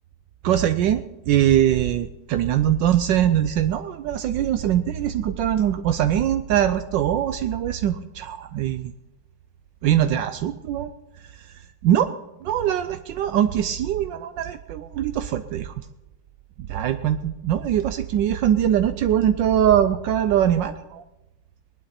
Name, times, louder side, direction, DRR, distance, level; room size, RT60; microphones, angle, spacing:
voice 1, 0.4-8.9 9.8-10.9 11.4-11.5 11.8-12.1 12.4-15.7 16.7-21.0, right 10 dB, 80° right, 10 dB, 1.3 m, -22 dB
19.5 x 12.0 x 4.3 m, 0.97 s
omnidirectional pair, 2.0 m